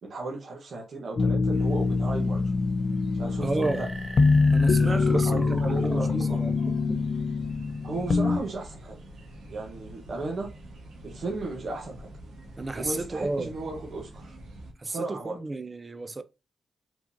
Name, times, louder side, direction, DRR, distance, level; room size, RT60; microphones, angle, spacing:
voice 1, 0.0-2.4 3.1-3.9 4.9-6.4 7.8-8.9 9.5-10.5 11.0-12.1 12.7-14.4 14.8-15.4, right 2 dB, 60° right, 1.2 m, -35 dB
sound 1, 1.2-8.4, left 4 dB, 50° left, 0.6 m, -24 dB
sound 2, 1.5-14.7, right 1 dB, 90° right, 1.4 m, -45 dB
voice 2, 3.4-3.9 4.5-6.5 12.6-13.5 14.8-16.2, right 2 dB, 25° right, 0.4 m, -32 dB
sound 3, 3.6-7.1, right 1 dB, 10° right, 1.1 m, -41 dB
4.8 x 3.9 x 2.8 m
cardioid pair, 95°, 0 cm